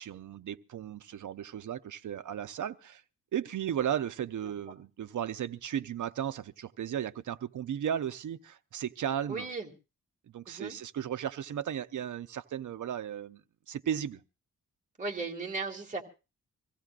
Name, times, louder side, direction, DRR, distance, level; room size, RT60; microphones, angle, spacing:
voice 1, 0.0-3.0 3.3-9.5 10.3-14.2, right 9 dB, 65° right, 0.7 m, -35 dB
voice 2, 9.3-9.7 10.5-10.8 15.0-16.0, right 3 dB, 20° right, 1.9 m, -36 dB
24.5 x 15.5 x 2.4 m
wide cardioid pair, 160°, 33 cm